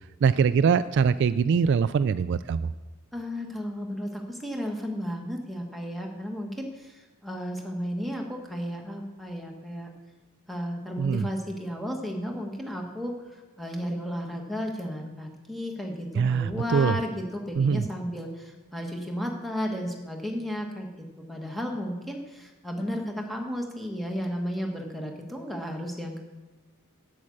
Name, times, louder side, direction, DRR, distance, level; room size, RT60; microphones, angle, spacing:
voice 1, 0.2-2.7 11.0-11.3 16.2-17.0 17.6-17.9, right 6 dB, 55° right, 14 dB, 0.3 m, -23 dB
voice 2, 3.1-9.9 10.5-26.2, equal, ahead, 1 dB, 1.4 m, -33 dB
8.5 x 8.5 x 6.4 m, 1.1 s
head